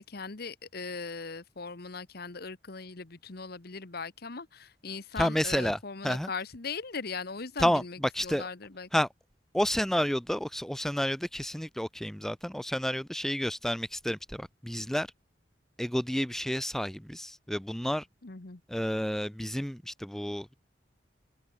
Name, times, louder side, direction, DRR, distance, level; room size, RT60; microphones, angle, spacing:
voice 1, 0.0-8.9 18.2-18.6, left 4 dB, 60° left, 1.3 m, -39 dB
voice 2, 5.2-5.8 6.0-6.3 7.6-8.4 8.9-9.1 9.5-15.1 15.8-18.1 18.7-20.5, equal, ahead, 0.5 m, -30 dB
head